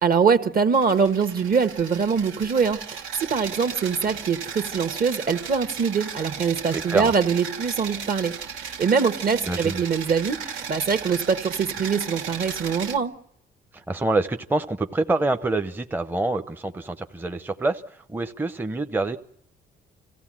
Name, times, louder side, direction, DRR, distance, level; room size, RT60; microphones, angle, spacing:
voice 1, 0.0-13.1, right 6 dB, 45° right, 1.4 m, -23 dB
sound 1, 0.7-13.0, right 6 dB, 85° right, 1.5 m, -35 dB
voice 2, 6.7-7.1 9.4-9.8 13.7-19.2, right 2 dB, 10° right, 0.7 m, -26 dB
26.5 x 15.5 x 7.5 m
cardioid pair, 90°, 20 cm